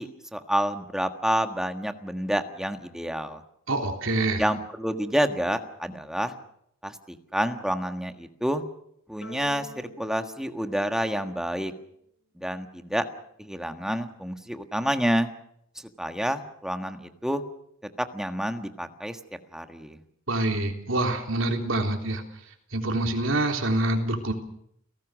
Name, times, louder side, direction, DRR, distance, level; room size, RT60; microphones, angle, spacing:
voice 1, 0.0-3.4 4.4-6.3 6.8-8.6 9.1-9.7 10.0-11.7 12.4-13.0 13.4-15.3 16.0-17.4 18.1-19.2 19.5-20.0, equal, 5° right, 6 dB, 1.6 m, -28 dB
voice 2, 3.7-4.4 20.3-22.2 22.7-24.3, right 2 dB, 70° right, 3 dB, 3.5 m, -26 dB
sound 1, 9.2-11.8, left 2 dB, 70° left, 7.0 m, -46 dB
29.5 x 18.0 x 6.4 m, 0.72 s
head